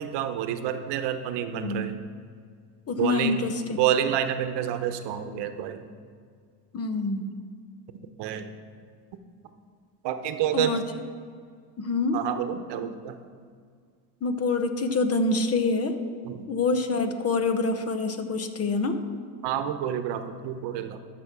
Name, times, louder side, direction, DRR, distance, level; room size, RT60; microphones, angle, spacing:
voice 1, 0.0-1.9 3.0-3.4 3.8-5.8 8.2-8.5 10.0-10.8 12.1-13.2 16.2-16.5 19.4-21.0, right 10 dB, 60° right, 9 dB, 1.0 m, -28 dB
voice 2, 1.5-1.9 2.9-3.8 6.7-7.3 10.5-10.8 11.8-12.2 14.2-16.0 16.5-19.0, left 3 dB, 30° left, 8 dB, 0.9 m, -26 dB
12.5 x 6.1 x 6.0 m, 2.1 s
cardioid pair, 115°, 46 cm